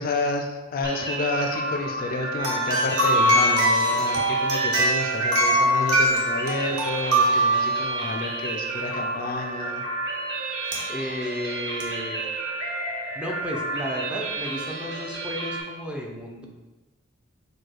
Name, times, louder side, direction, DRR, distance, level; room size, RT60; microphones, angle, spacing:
voice 1, 0.0-9.8, left 2 dB, 45° left, 3 dB, 0.4 m, -30 dB
sound 1, 0.8-15.6, right 2 dB, 60° right, 1.1 m, -31 dB
sound 2, 2.4-8.4 10.7-10.8 11.8-11.9, right 1 dB, 85° right, 1.1 m, -22 dB
voice 2, 10.9-12.5 13.1-16.5, equal, 5° right, -2 dB, 0.5 m, -33 dB
4.8 x 2.2 x 4.5 m, 1.1 s
head